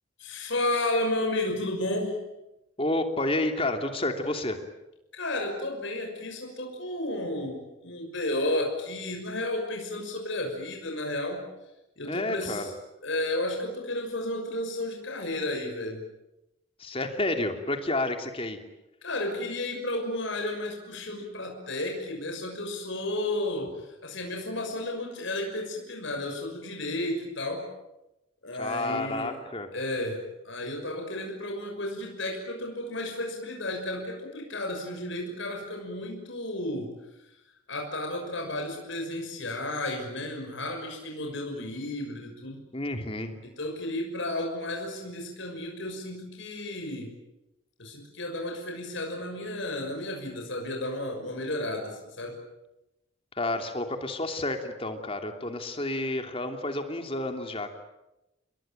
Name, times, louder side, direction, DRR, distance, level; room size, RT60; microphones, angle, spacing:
voice 1, 0.2-2.2 5.1-11.4 12.0-12.7 13.0-16.0 19.0-27.7 28.4-29.4 29.7-37.0 37.7-42.6 43.4-47.1 47.8-52.4, left 1 dB, 65° left, 2 dB, 6.3 m, -32 dB
voice 2, 2.8-4.6 12.0-12.7 16.8-18.6 28.6-29.7 42.7-43.3 53.4-57.7, left 2 dB, 25° left, 5 dB, 3.0 m, -30 dB
29.5 x 22.0 x 9.1 m, 0.94 s
head